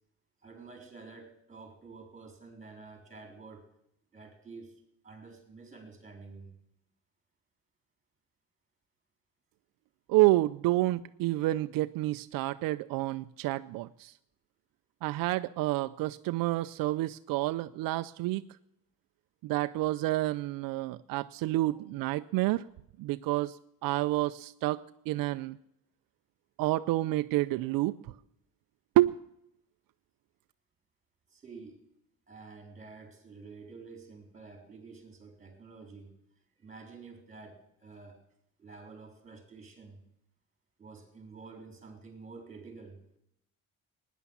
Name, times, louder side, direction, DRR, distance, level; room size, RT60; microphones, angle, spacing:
voice 1, 0.4-3.7 4.1-6.5 21.5-21.8 31.3-31.8 32.3-36.2 36.6-38.2 38.6-40.1 40.8-43.0, right 4 dB, 20° right, 5 dB, 4.0 m, -49 dB
voice 2, 10.1-14.1 15.0-18.4 19.4-22.6 23.0-25.6 26.6-28.1 29.0-29.2, right 17 dB, 75° right, 11 dB, 0.6 m, -29 dB
17.0 x 10.5 x 7.2 m, 0.78 s
cardioid pair, 150°, 34 cm